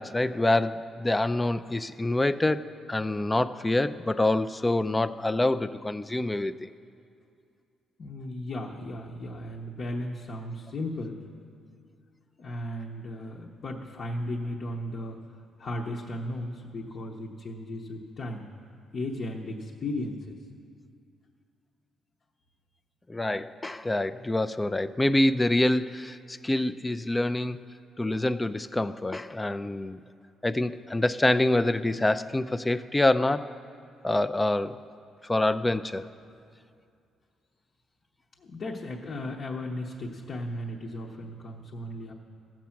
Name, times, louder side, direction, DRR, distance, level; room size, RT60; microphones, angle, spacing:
voice 1, 0.0-6.7 23.1-27.6 28.0-30.0 30.4-33.5 34.0-34.8 35.2-36.1, left 1 dB, 15° left, 13 dB, 0.3 m, -26 dB
voice 2, 8.0-11.2 12.4-15.2 15.6-18.5 18.9-20.2 38.4-42.1, left 1 dB, 50° left, -1 dB, 0.9 m, -35 dB
15.0 x 7.5 x 5.8 m, 2.4 s
cardioid pair, 90°, 0 cm